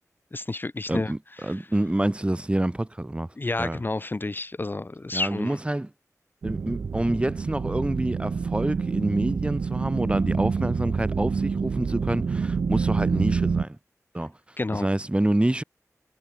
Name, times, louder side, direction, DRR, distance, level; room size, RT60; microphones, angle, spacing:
voice 1, 0.3-1.7 3.4-5.6 14.6-14.9, left 2 dB, 35° left, 1.6 m, -30 dB
voice 2, 0.9-3.8 5.1-5.9 6.4-13.8 14.1-14.3 14.7-15.6, right 1 dB, 20° right, 7.0 m, -27 dB
sound 1, 6.4-13.6, right 5 dB, 80° right, 0.8 m, -27 dB
wide cardioid pair, 100°, 6 cm